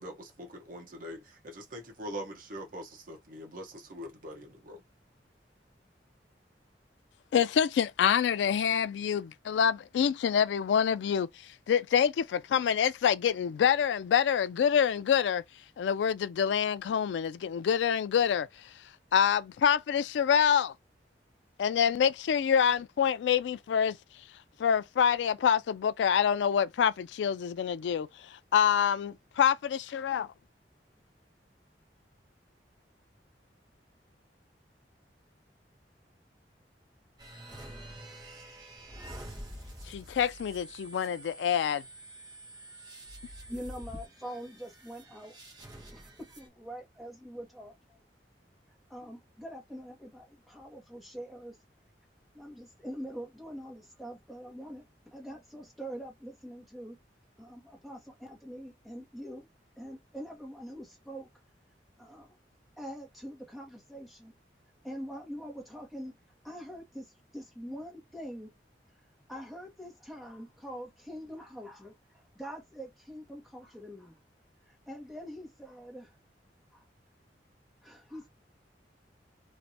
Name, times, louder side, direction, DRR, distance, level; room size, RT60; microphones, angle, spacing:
voice 1, 0.0-4.8, equal, 50° right, 1.0 m, -43 dB
voice 2, 7.3-11.3 11.7-15.4 15.8-18.5 19.1-20.7 21.6-24.0 24.6-28.1 28.5-30.3 39.9-41.8, left 8 dB, 85° left, 0.3 m, -26 dB
sound 1, 37.2-46.5, right 1 dB, 25° right, 1.1 m, -47 dB
voice 3, 43.5-45.4 45.9-48.0 48.9-51.6 52.3-57.0 57.4-59.5 59.8-61.3 62.0-62.3 62.8-64.3 64.8-66.1 66.4-68.5 69.3-74.2 74.7-76.1 76.7-76.8 77.8-78.3, equal, ahead, 1.1 m, -44 dB
3.2 x 2.5 x 2.7 m
head